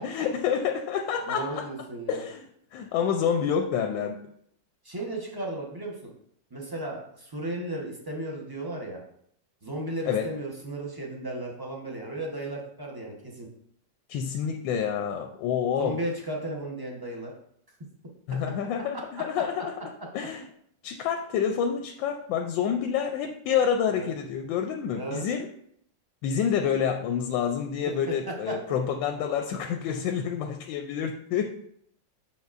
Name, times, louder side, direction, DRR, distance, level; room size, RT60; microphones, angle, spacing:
voice 1, 0.0-1.7 2.1-2.4 2.7-4.2 10.1-10.3 14.1-16.0 18.3-19.7 20.1-20.5 20.8-25.5 26.2-31.5, left 7 dB, 90° left, 5 dB, 1.3 m, -28 dB
voice 2, 1.3-2.2 4.8-6.1 6.5-9.0 9.6-13.5 15.8-17.3 23.9-24.1 24.9-25.2 27.9-28.5, right 1 dB, 20° right, -1 dB, 0.7 m, -35 dB
7.2 x 6.0 x 2.5 m, 0.69 s
omnidirectional pair, 2.0 m